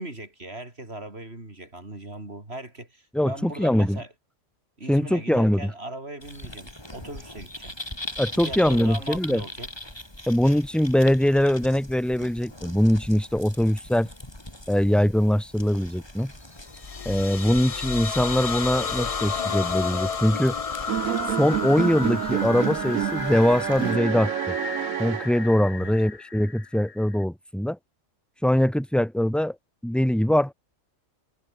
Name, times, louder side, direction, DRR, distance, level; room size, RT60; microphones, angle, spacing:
voice 1, 0.0-4.1 4.8-7.7 8.4-9.7 25.8-25.9, right 2 dB, 50° right, 5.4 m, -39 dB
voice 2, 3.1-4.0 4.9-5.7 8.2-9.4 10.3-14.1 14.7-16.3 17.0-20.5 21.4-24.5 25.0-27.8 28.4-29.5 29.8-30.5, equal, ahead, 1.3 m, -22 dB
sound 1, 6.2-24.0, left 1 dB, 20° left, 4.2 m, -41 dB
sound 2, 16.6-27.2, left 6 dB, 35° left, 0.7 m, -32 dB
sound 3, 20.9-25.8, right 13 dB, 85° right, 1.1 m, -28 dB
omnidirectional pair, 1.4 m